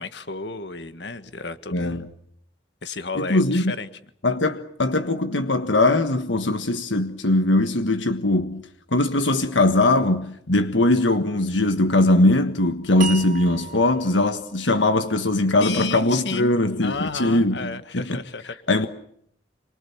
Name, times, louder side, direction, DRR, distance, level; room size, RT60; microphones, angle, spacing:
voice 1, 0.0-2.1 2.8-3.9 15.6-16.5 16.8-18.6, left 3 dB, 70° left, 1.8 m, -32 dB
voice 2, 1.7-2.1 3.2-3.7 4.2-8.6 8.9-18.2 18.7-18.9, left 2 dB, 90° left, 1.5 m, -21 dB
sound 1, 13.0-16.2, right 5 dB, 45° right, 1.4 m, -36 dB
27.5 x 24.0 x 7.2 m
head